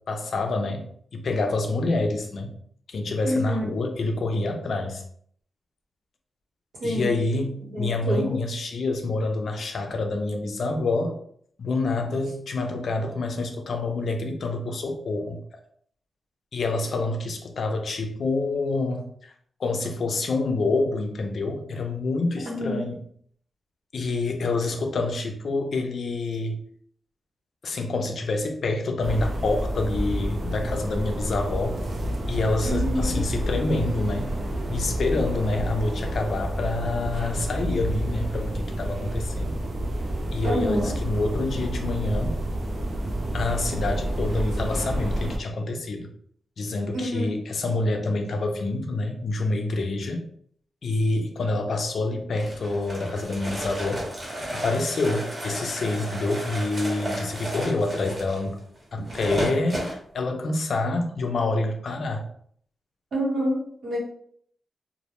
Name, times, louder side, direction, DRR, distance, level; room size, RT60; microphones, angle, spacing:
voice 1, 0.1-0.9 1.1-2.6 2.9-5.0 6.8-11.2 11.6-15.4 16.5-19.3 19.6-23.0 23.9-26.6 27.6-31.8 32.3-34.3 34.7-39.6 40.3-42.4 43.3-46.1 46.6-50.3 50.8-54.1 54.5-58.6 58.9-62.2, left 2 dB, 60° left, 4 dB, 0.4 m, -27 dB
voice 2, 3.2-3.6 6.8-7.2 7.7-8.3 22.4-22.8 32.6-33.2 40.4-40.9 46.9-47.3 63.1-64.0, equal, 85° right, -5 dB, 1.1 m, -27 dB
sound 1, 29.0-45.4, right 1 dB, 55° right, 0.4 m, -29 dB
sound 2, 52.4-60.0, right 1 dB, 30° right, 0.8 m, -33 dB
2.1 x 2.0 x 2.9 m, 0.63 s
wide cardioid pair, 140°, 0 cm